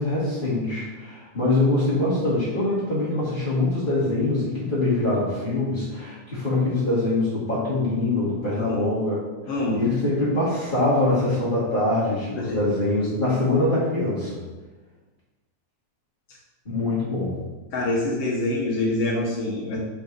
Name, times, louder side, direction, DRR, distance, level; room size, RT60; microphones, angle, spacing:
voice 1, 0.0-9.2 9.7-14.4 16.6-17.4, left 2 dB, 20° left, -12 dB, 1.4 m, -23 dB
voice 2, 9.5-9.9 12.3-12.6 17.7-19.8, left 2 dB, 60° left, -4 dB, 1.7 m, -25 dB
7.6 x 6.5 x 4.0 m, 1.2 s
omnidirectional pair, 4.4 m